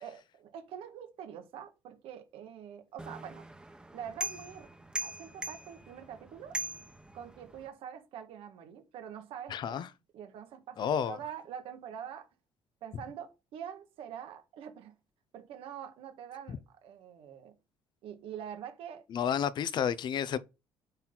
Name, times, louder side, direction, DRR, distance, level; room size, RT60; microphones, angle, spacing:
voice 1, 0.0-3.5 3.9-4.7 5.0-6.6 7.1-12.3 12.8-15.0 15.3-17.5 18.0-19.0 20.3-20.4, right 9 dB, 75° right, 1.8 m, -45 dB
sound 1, 3.0-7.7, right 2 dB, 10° right, 1.2 m, -41 dB
voice 2, 9.5-9.9 10.8-11.2 19.1-20.4, left 8 dB, 50° left, 0.7 m, -30 dB
8.8 x 4.2 x 3.9 m
cardioid pair, 110°, 9 cm